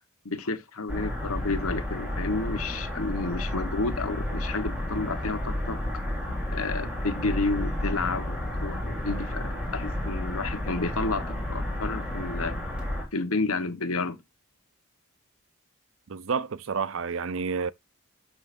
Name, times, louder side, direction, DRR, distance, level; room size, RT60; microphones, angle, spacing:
voice 1, 0.2-6.0 6.5-12.6 13.1-14.2, left 3 dB, 80° left, 1.2 m, -31 dB
sound 1, 0.9-13.0, left 1 dB, 5° right, 3.6 m, -31 dB
voice 2, 16.1-17.7, right 5 dB, 65° right, 0.5 m, -29 dB
12.0 x 5.9 x 2.6 m
head